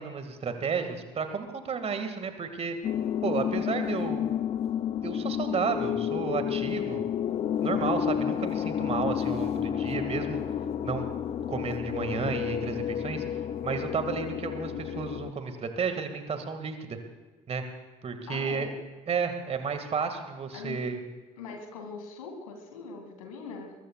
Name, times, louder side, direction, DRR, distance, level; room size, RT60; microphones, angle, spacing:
voice 1, 0.0-2.8 3.2-4.3 5.0-7.1 7.6-10.4 10.8-11.0 11.5-13.2 13.6-17.0 17.5-17.6 18.0-18.7 19.1-21.0, right 5 dB, 30° right, 7 dB, 2.0 m, -32 dB
sound 1, 2.8-15.3, left 9 dB, 35° left, 0.6 m, -30 dB
voice 2, 18.3-18.7 20.5-20.8 21.4-23.7, left 5 dB, 70° left, 4 dB, 2.5 m, -41 dB
22.5 x 21.0 x 2.4 m, 1.3 s
figure-of-eight pair, 55°, 19 cm